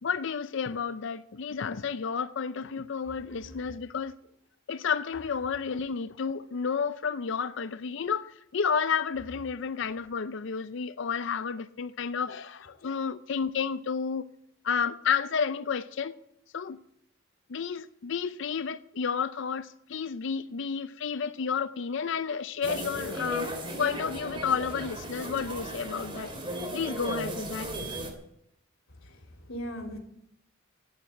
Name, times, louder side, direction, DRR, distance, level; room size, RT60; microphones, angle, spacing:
voice 1, 0.0-4.1 4.7-14.3 14.6-16.1 16.5-16.8 17.5-23.5 23.8-26.3 26.7-27.7, left 6 dB, 60° left, 0.5 m, -31 dB
voice 2, 3.0-3.7 12.8-12.9 28.9-30.0, equal, 80° left, 2.7 m, -41 dB
sound 1, 22.6-28.1, right 1 dB, 25° right, 2.8 m, -36 dB
14.0 x 9.1 x 8.6 m
head